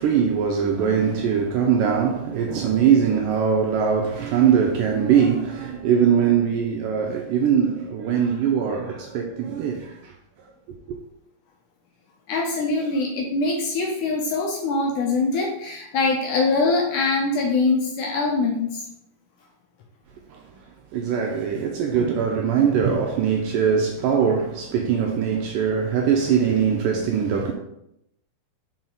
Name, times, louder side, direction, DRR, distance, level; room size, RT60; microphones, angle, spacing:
voice 1, 0.0-10.1 10.9-11.0 20.3-20.4 20.9-27.5, right 7 dB, 85° right, 1.9 m, -21 dB
voice 2, 12.3-18.8, left 3 dB, 75° left, 1.9 m, -23 dB
5.7 x 4.7 x 3.9 m
omnidirectional pair, 4.3 m